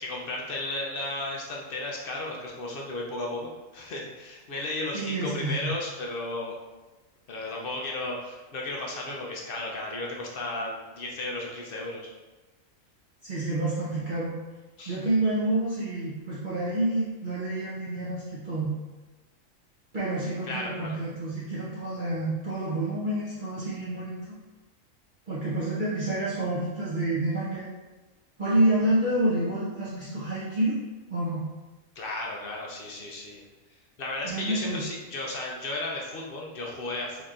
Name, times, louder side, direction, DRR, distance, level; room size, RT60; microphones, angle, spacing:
voice 1, 0.0-6.6 7.3-12.1 14.8-15.0 20.4-21.0 32.0-33.4 34.0-37.2, left 2 dB, 60° left, -2 dB, 0.6 m, -34 dB
voice 2, 4.9-5.8 13.2-14.4 14.9-18.7 19.9-24.3 25.3-27.7 28.4-30.8 31.1-31.5 34.2-34.8, right 1 dB, 45° right, -10 dB, 0.8 m, -28 dB
4.5 x 2.8 x 2.4 m, 1.2 s
omnidirectional pair, 1.4 m